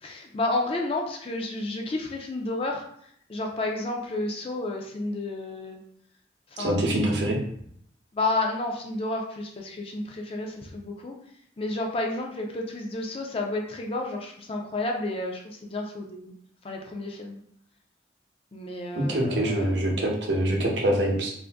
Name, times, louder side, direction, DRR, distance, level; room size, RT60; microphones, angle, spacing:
voice 1, 0.0-2.8 3.3-5.8 6.5-6.9 8.1-11.1 11.6-16.3 16.6-17.4 18.5-19.7, left 2 dB, 30° left, 1 dB, 0.4 m, -31 dB
voice 2, 6.6-7.4 19.0-21.3, right 1 dB, 75° right, 0 dB, 0.8 m, -24 dB
2.6 x 2.5 x 3.4 m, 0.69 s
head